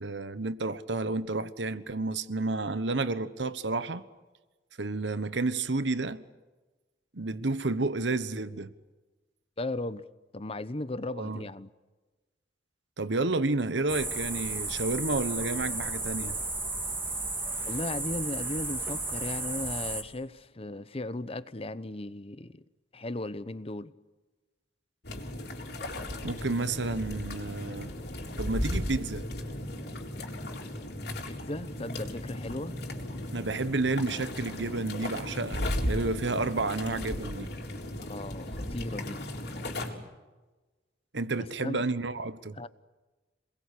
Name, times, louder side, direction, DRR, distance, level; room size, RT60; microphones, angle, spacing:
voice 1, 0.0-4.0 4.8-6.2 7.1-8.7 11.2-11.4 13.0-16.3 26.2-27.9 28.4-29.3 33.3-37.5 41.1-42.6, right 3 dB, 80° right, 1.2 m, -30 dB
voice 2, 9.6-10.0 10.3-11.7 17.7-22.6 22.9-23.9 31.3-32.8 38.0-39.2 41.4-41.8 42.6-42.7, left 2 dB, 35° left, 0.9 m, -36 dB
sound 1, 13.9-20.0, right 2 dB, 10° right, 3.1 m, -33 dB
sound 2, 25.0-39.9, left 1 dB, 65° left, 4.1 m, -36 dB
27.5 x 21.0 x 8.5 m
head